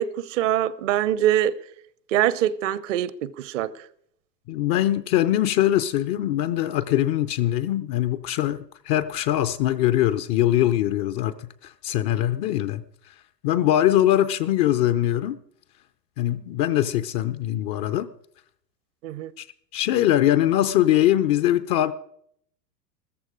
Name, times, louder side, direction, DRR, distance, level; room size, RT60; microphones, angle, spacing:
voice 1, 0.0-1.6 2.1-3.7 19.0-19.3, right 11 dB, 50° right, 0.9 m, -23 dB
voice 2, 4.5-11.3 11.6-12.8 13.4-15.4 16.2-18.1 19.4-19.5 19.7-21.9, left 12 dB, 30° left, 0.5 m, -22 dB
14.0 x 14.0 x 4.9 m
figure-of-eight pair, 100°, 49 cm